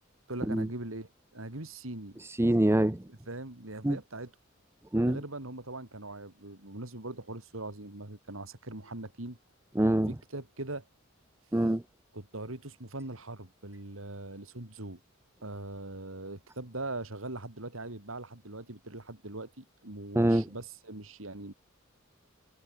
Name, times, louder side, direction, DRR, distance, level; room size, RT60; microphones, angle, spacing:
voice 1, 0.3-2.2 3.1-4.3 5.1-9.4 10.1-10.8 12.1-15.0 15.4-21.5, right 2 dB, 75° right, 3.4 m, -41 dB
voice 2, 2.4-3.0 3.8-4.0 4.9-5.2 9.8-10.1 11.5-11.8 20.2-20.4, right 1 dB, 10° right, 0.6 m, -24 dB
head